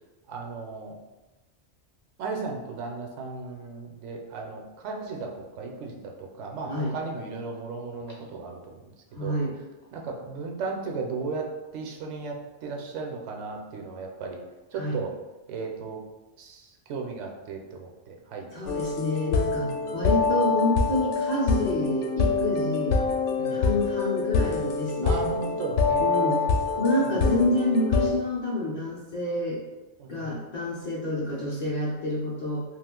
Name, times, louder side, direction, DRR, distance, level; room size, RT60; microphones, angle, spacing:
voice 1, 0.3-1.0 2.2-9.3 9.9-14.4 14.7-15.1 15.5-16.0 16.4-18.5 19.6-19.8 23.4-23.6 25.0-26.5 27.0-27.2 30.0-30.3, right 4 dB, 80° right, 1 dB, 0.9 m, -35 dB
voice 2, 9.2-9.6 14.7-15.0 18.5-23.0 23.5-25.2 26.0-26.4 26.8-29.6 30.1-32.6, left 1 dB, 50° left, -6 dB, 0.5 m, -28 dB
sound 1, 18.7-28.1, left 4 dB, 75° left, 0.9 m, -25 dB
2.4 x 2.4 x 3.6 m, 1.1 s
omnidirectional pair, 1.2 m